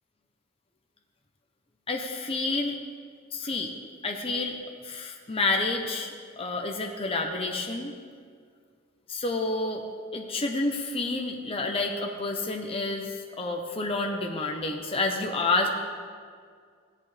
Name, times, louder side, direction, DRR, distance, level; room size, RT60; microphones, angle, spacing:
voice 1, 1.9-2.8 3.3-3.7 4.0-4.6 4.8-7.9 9.1-9.8 10.1-13.1 13.4-15.7, left 3 dB, 30° left, 2 dB, 0.8 m, -29 dB
16.5 x 11.5 x 3.3 m, 2.1 s
head